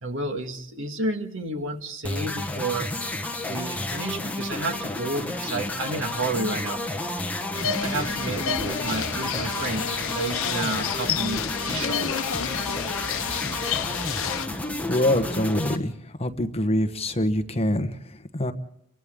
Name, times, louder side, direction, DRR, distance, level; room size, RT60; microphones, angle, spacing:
voice 1, 0.0-2.9 3.4-6.8 7.8-9.9 10.1-12.0, right 2 dB, 65° right, 6 dB, 1.8 m, -31 dB
sound 1, 2.0-15.8, left 1 dB, 5° left, 1.4 m, -31 dB
sound 2, 7.5-14.5, left 7 dB, 75° left, 0.9 m, -30 dB
voice 2, 14.9-15.9 16.2-18.5, left 1 dB, 30° left, 8 dB, 1.1 m, -25 dB
29.5 x 23.5 x 3.8 m, 0.68 s
head